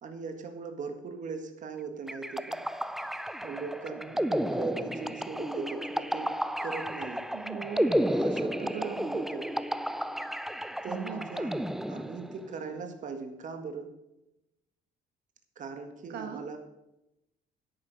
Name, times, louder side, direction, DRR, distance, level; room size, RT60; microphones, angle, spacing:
voice 1, 0.0-2.6 3.4-6.3 6.6-7.2 8.1-9.5 10.8-13.9 15.5-16.6, right 5 dB, 50° right, 6 dB, 1.7 m, -39 dB
sound 1, 2.1-12.5, equal, ahead, 0.4 m, -32 dB
voice 2, 7.3-8.0 8.4-9.1 10.9-11.2 16.1-16.5, right 7 dB, 75° right, 6 dB, 1.5 m, -39 dB
10.5 x 8.8 x 5.3 m, 0.91 s
cardioid pair, 110°, 17 cm